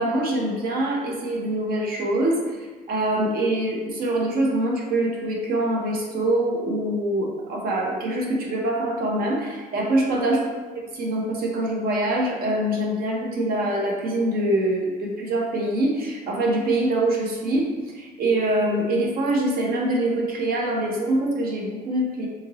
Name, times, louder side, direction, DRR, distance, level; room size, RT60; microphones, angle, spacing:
voice 1, 0.0-10.5 10.9-22.3, right 1 dB, 60° right, -1 dB, 0.7 m, -24 dB
2.8 x 2.5 x 2.8 m, 1.4 s
cardioid pair, 110°, 17 cm